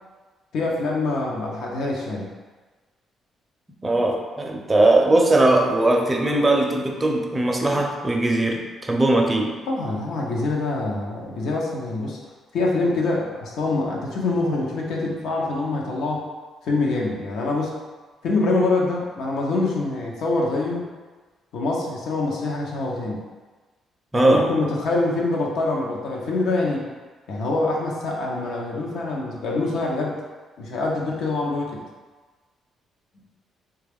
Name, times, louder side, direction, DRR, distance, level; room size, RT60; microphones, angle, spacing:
voice 1, 0.5-2.3 9.7-12.2 12.5-16.3 16.6-17.7 18.2-20.8 21.5-23.2 24.1-26.9 27.3-30.2 30.6-31.8, left 2 dB, 75° left, -2 dB, 0.7 m, -25 dB
voice 2, 3.8-9.6 24.1-24.5, right 2 dB, 20° right, 1 dB, 0.5 m, -19 dB
3.2 x 2.3 x 3.4 m, 1.3 s
cardioid pair, 90°, 0 cm